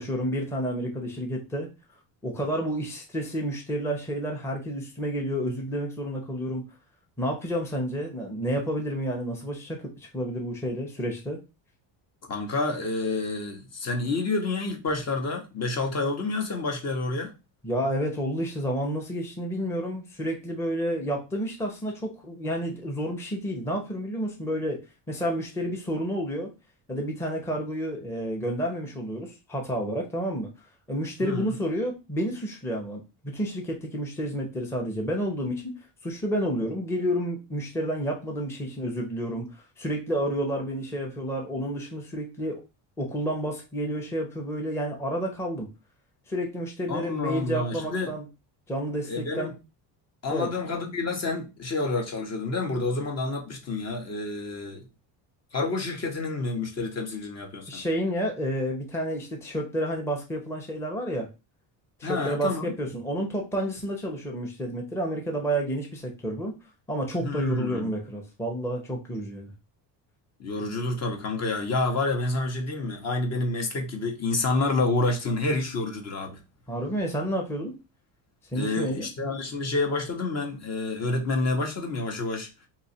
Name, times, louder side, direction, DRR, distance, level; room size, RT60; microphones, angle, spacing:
voice 1, 0.0-1.7 2.2-6.6 7.2-11.4 17.6-24.8 25.1-26.5 26.9-30.5 30.9-35.8 36.0-39.4 39.8-42.6 43.0-45.7 46.3-48.2 48.7-49.5 50.3-50.5 57.7-61.3 62.0-66.5 66.9-69.5 76.7-77.7 78.5-79.1, equal, 5° left, 0.6 m, -30 dB
voice 2, 12.3-17.3 31.2-31.6 46.9-48.1 49.1-49.5 50.2-54.8 55.5-57.8 62.0-62.7 67.2-67.9 70.4-76.4 78.5-82.7, left 2 dB, 40° left, 0.8 m, -29 dB
2.8 x 2.4 x 4.1 m
cardioid pair, 115°, 42 cm